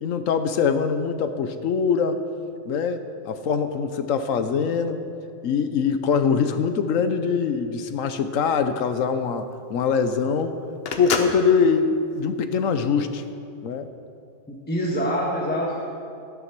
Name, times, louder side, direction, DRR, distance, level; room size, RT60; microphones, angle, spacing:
voice 1, 0.0-2.2 2.6-5.0 5.4-10.5 11.0-13.2 13.6-13.9, left 6 dB, 90° left, 9 dB, 1.2 m, -23 dB
Telephone, 7.9-13.2, left 4 dB, 55° left, 1.1 m, -32 dB
voice 2, 14.5-15.9, equal, 10° left, -3 dB, 1.4 m, -25 dB
13.0 x 9.5 x 6.0 m, 2.5 s
omnidirectional pair, 1.3 m